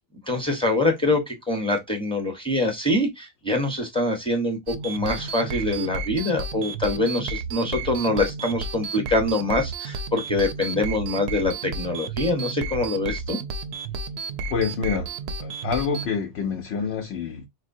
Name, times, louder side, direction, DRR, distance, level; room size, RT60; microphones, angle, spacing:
voice 1, 0.3-13.4, left 2 dB, 5° left, 0.9 m, -24 dB
sound 1, 4.7-16.1, right 4 dB, 70° right, 0.8 m, -32 dB
voice 2, 14.5-15.1 15.4-17.5, left 6 dB, 70° left, 0.9 m, -27 dB
4.6 x 2.1 x 2.6 m
omnidirectional pair, 1.2 m